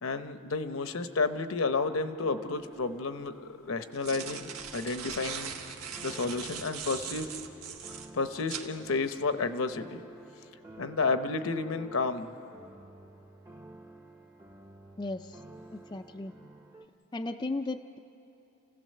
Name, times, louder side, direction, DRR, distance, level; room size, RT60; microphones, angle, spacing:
voice 1, 0.0-5.6 6.0-7.3 8.1-10.0 10.8-12.3, left 3 dB, 65° left, 9 dB, 0.8 m, -31 dB
sound 1, 2.0-16.8, right 2 dB, 15° right, 0.8 m, -51 dB
sound 2, 2.6-2.7 3.7-8.7, right 7 dB, 80° right, 1.3 m, -40 dB
voice 2, 15.0-15.4 15.7-16.3 17.1-18.0, left 2 dB, 20° left, 5 dB, 0.4 m, -35 dB
29.5 x 16.0 x 6.7 m, 2.9 s
head